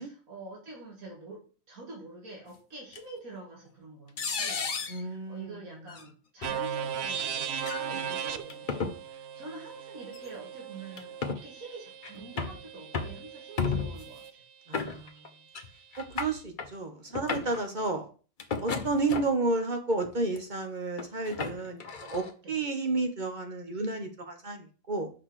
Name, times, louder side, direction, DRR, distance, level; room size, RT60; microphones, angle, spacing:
voice 1, 0.0-1.4 1.7-14.4 22.4-22.6, right 2 dB, 80° right, 2.4 m, -46 dB
sound 1, 2.9-3.0 4.2-5.0 5.9-6.0 6.4-6.5 7.6-7.8 8.5-9.0 10.1-10.3 11.0-11.4 12.0-12.6 12.9-13.2 13.6-14.1 14.7-15.3 15.5-15.7 15.9-16.7 17.1-17.6 18.4-19.5 20.0-20.4 21.0-22.3, left 5 dB, 40° left, 0.9 m, -33 dB
voice 2, 4.9-5.6 14.7-15.1 16.0-18.1 18.6-25.1, right 3 dB, 35° right, 1.3 m, -31 dB
sound 2, 6.4-14.3, right 8 dB, 60° right, 0.8 m, -38 dB
6.0 x 4.9 x 6.4 m
omnidirectional pair, 1.4 m